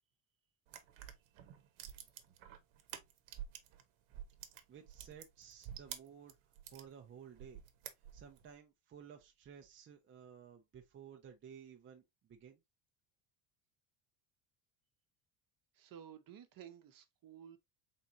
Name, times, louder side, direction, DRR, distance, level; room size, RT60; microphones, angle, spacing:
sound 1, 0.7-3.8 4.1-6.9 7.3-8.4, right 10 dB, 70° right, 1.0 m, -49 dB
voice 1, 4.7-6.4 6.7-7.6 8.1-12.6, right 8 dB, 25° right, 0.6 m, -55 dB
voice 2, 15.7-17.6, right 9 dB, 45° right, 0.9 m, -54 dB
4.2 x 3.7 x 2.7 m
cardioid pair, 135°, 48 cm